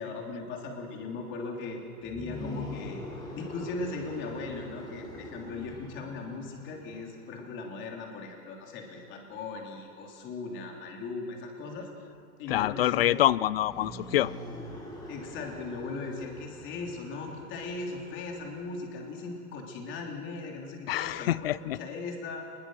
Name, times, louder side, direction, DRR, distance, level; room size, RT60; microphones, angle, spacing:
voice 1, 0.0-3.0 3.3-11.9 12.4-13.2 15.1-22.4, left 3 dB, 25° left, 1 dB, 3.3 m, -38 dB
sound 1, 2.0-7.2 13.4-19.1, left 1 dB, 10° left, 3.7 m, -44 dB
voice 2, 12.5-14.3 20.9-21.8, left 13 dB, 45° left, 21 dB, 0.4 m, -26 dB
25.5 x 21.0 x 6.4 m, 2.7 s
hypercardioid pair, 155°, 45 cm